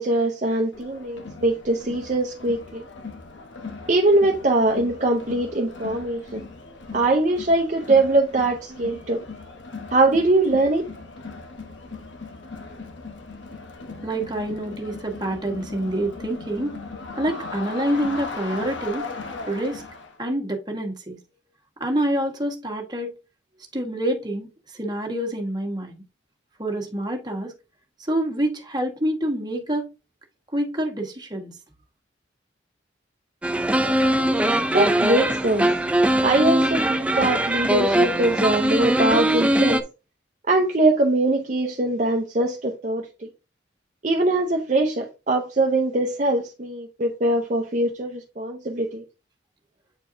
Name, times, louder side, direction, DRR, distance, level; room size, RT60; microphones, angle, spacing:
voice 1, 0.0-2.8 3.9-6.2 6.9-9.2 9.9-10.9 34.7-35.7 36.2-39.8 40.5-43.3 44.0-49.0, right 2 dB, 40° right, 0.7 m, -22 dB
Crowd, 0.7-20.2, left 3 dB, 70° left, 1.1 m, -38 dB
voice 2, 14.0-16.7 17.2-19.1 19.5-19.8 20.2-21.2 21.8-23.1 23.7-26.0 26.6-27.5 28.0-29.9 30.5-31.5, right 1 dB, 20° right, 1.3 m, -27 dB
sound 1, 33.4-39.8, right 1 dB, 5° right, 0.4 m, -21 dB
8.3 x 4.5 x 2.7 m
head